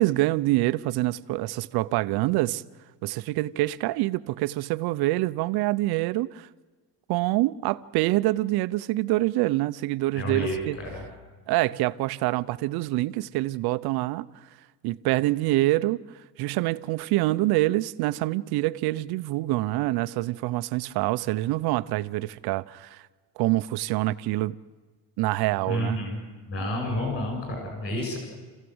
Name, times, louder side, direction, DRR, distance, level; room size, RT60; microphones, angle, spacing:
voice 1, 0.0-2.6 3.0-6.5 7.1-10.8 11.5-14.3 14.8-16.0 16.4-23.0 23.4-24.5 25.2-26.0, right 18 dB, 55° right, 0.8 m, -26 dB
voice 2, 10.1-11.0 25.7-26.2 26.5-28.2, left 1 dB, 30° left, 7.8 m, -30 dB
28.0 x 16.0 x 7.9 m
cardioid pair, 160°, 45 cm